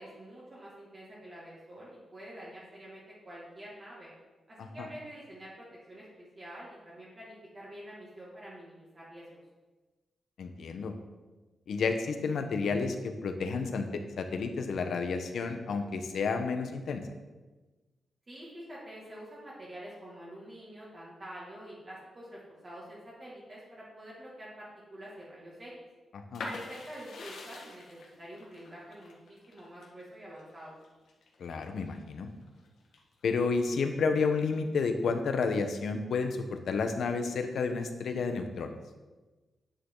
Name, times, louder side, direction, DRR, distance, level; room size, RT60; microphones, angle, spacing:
voice 1, 0.0-4.1 4.5-9.3 18.3-25.7 26.4-27.8 28.2-30.7, equal, 30° right, -7 dB, 2.3 m, -47 dB
voice 2, 10.4-10.9 11.7-17.0 26.1-26.4 31.4-32.3 33.2-38.7, left 4 dB, 70° left, 6 dB, 1.0 m, -31 dB
sound 1, 26.3-32.0 32.4-33.3, left 3 dB, 85° left, 1.7 m, -45 dB
10.0 x 8.8 x 3.9 m, 1.2 s
wide cardioid pair, 160°, 0 cm